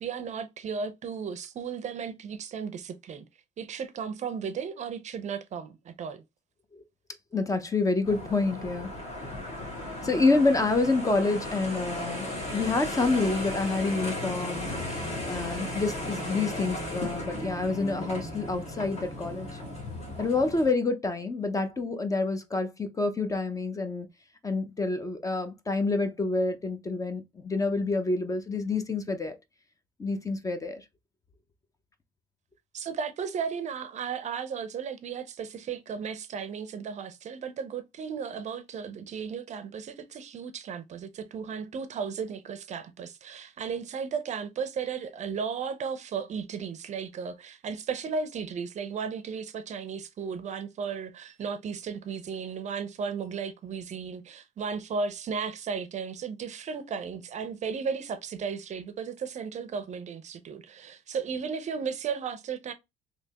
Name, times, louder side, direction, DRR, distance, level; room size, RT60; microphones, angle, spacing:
voice 1, 0.0-3.2 3.6-6.2 32.7-62.7, right 6 dB, 45° right, 0.5 m, -35 dB
voice 2, 7.3-8.9 9.2-9.4 10.0-14.7 15.3-19.6 20.2-24.1 24.4-29.3 30.0-30.8, left 3 dB, 20° left, 0.5 m, -28 dB
sound 1, 8.0-20.7, left 1 dB, 40° left, 1.5 m, -35 dB
3.3 x 2.8 x 2.8 m
cardioid pair, 110°, 17 cm